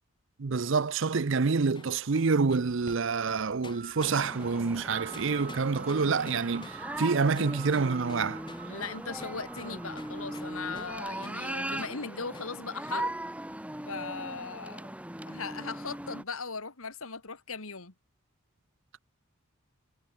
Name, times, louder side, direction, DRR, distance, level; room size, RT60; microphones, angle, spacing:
voice 1, 0.4-8.4, right 4 dB, 60° right, 0.6 m, -27 dB
sound 1, 1.7-11.0 11.2-11.4 11.8-12.0 12.3-12.5 12.9-13.1, left 2 dB, 20° left, 2.4 m, -49 dB
sound 2, 2.6-11.1, right 6 dB, 40° right, 4.9 m, -47 dB
sound 3, 4.0-16.2, right 1 dB, 5° right, 2.5 m, -39 dB
voice 2, 8.6-13.1 13.9-14.9 15.3-17.9, left 4 dB, 80° left, 2.3 m, -38 dB
head